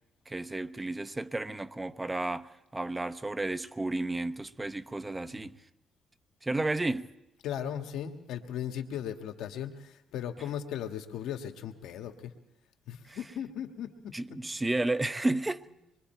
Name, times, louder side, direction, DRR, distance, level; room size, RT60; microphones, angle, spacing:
voice 1, 0.3-5.6 6.4-7.1 13.1-13.2 14.1-15.6, right 2 dB, 15° right, 0.8 m, -32 dB
voice 2, 7.4-12.3 12.9-14.1, left 9 dB, 85° left, 1.7 m, -37 dB
25.5 x 22.5 x 4.5 m
cardioid pair, 90°, 0 cm